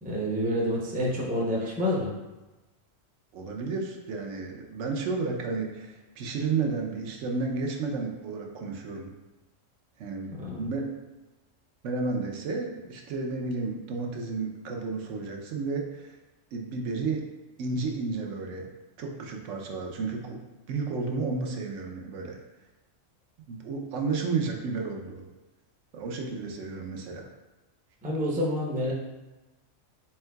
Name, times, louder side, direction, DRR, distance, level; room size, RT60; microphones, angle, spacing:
voice 1, 0.0-2.1 10.4-10.7 28.0-28.9, equal, 10° right, -4 dB, 0.4 m, -28 dB
voice 2, 3.3-9.1 10.0-10.9 11.8-16.2 16.5-17.2 17.6-18.7 19.0-22.4 23.5-25.2 25.9-27.3, right 4 dB, 80° right, 1 dB, 1.0 m, -32 dB
4.4 x 3.7 x 2.2 m, 1.1 s
omnidirectional pair, 1.3 m